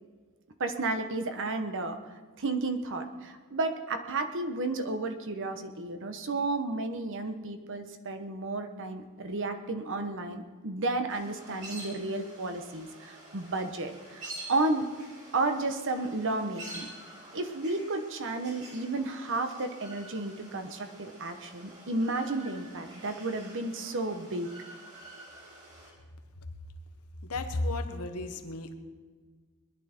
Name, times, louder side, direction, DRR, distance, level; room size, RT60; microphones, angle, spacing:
voice 1, 0.6-2.0 2.4-14.9 15.3-16.9 17.3-24.5, right 2 dB, 60° right, 7 dB, 1.2 m, -32 dB
sound 1, 11.1-25.9, right 1 dB, 35° right, 4.1 m, -48 dB
voice 2, 27.2-28.8, left 2 dB, 80° left, 6 dB, 1.3 m, -33 dB
21.0 x 11.0 x 4.5 m, 1.5 s
head